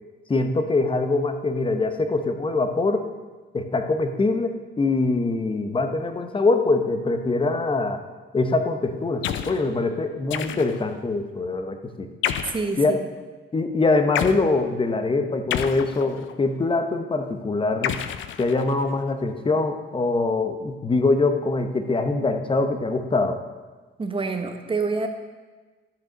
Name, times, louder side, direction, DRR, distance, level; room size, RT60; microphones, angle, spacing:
voice 1, 0.3-3.1 3.5-8.0 8.3-12.1 12.8-12.9 13.5-18.0 18.4-23.4, left 3 dB, 25° left, 7 dB, 1.0 m, -23 dB
sound 1, 9.2-9.6 10.3-10.9 12.2-12.7 14.1-14.4 15.5-16.4 17.8-18.9, left 9 dB, 75° left, 0.6 m, -29 dB
voice 2, 12.5-13.0 24.0-25.1, right 4 dB, 25° right, 5 dB, 1.3 m, -27 dB
12.0 x 6.5 x 5.2 m, 1.3 s
cardioid pair, 90°, 20 cm